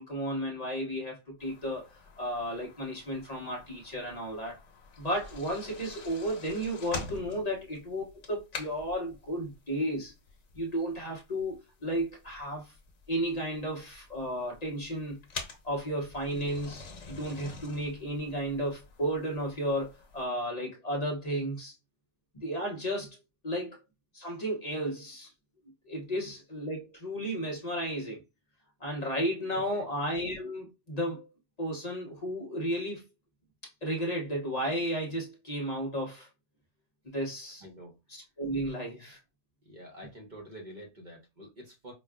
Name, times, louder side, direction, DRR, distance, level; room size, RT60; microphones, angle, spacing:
voice 1, 0.0-1.9 2.2-4.6 5.0-10.1 10.6-12.7 13.1-15.2 15.6-21.7 22.3-23.8 24.1-25.3 25.8-28.2 28.8-31.3 31.6-33.0 33.8-36.3 37.0-37.6 38.1-39.2, equal, 35° left, 1.1 m, -33 dB
sound 1, 1.4-20.2, left 4 dB, 80° left, 1.3 m, -47 dB
voice 2, 29.5-29.8 37.6-38.0 39.6-41.9, equal, 40° right, 1.0 m, -47 dB
5.1 x 2.4 x 2.3 m
omnidirectional pair, 1.2 m